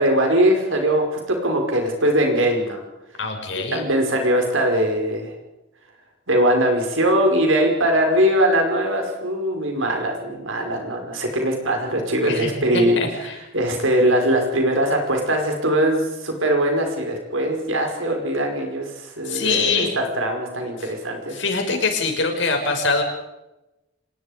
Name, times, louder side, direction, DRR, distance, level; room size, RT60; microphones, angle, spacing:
voice 1, 0.0-2.8 3.5-5.3 6.3-21.4, right 1 dB, 80° right, 3 dB, 5.4 m, -21 dB
voice 2, 3.2-3.8 12.2-13.3 19.3-19.9 21.3-23.0, left 4 dB, 65° left, 3 dB, 5.8 m, -23 dB
26.0 x 21.0 x 5.3 m, 0.97 s
head